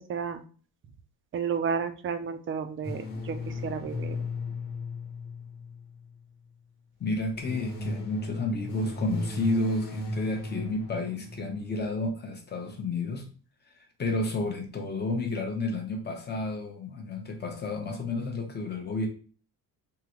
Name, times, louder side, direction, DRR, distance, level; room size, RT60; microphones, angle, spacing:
voice 1, 0.1-0.4 1.3-4.2, right 6 dB, 35° right, 8 dB, 0.5 m, -32 dB
sound 1, 2.8-6.2 7.1-11.9, left 2 dB, 80° left, 1.2 m, -36 dB
voice 2, 7.0-13.3 13.7-19.1, left 2 dB, 25° left, 3 dB, 0.8 m, -31 dB
3.7 x 2.2 x 2.9 m, 0.40 s
cardioid pair, 120°, 38 cm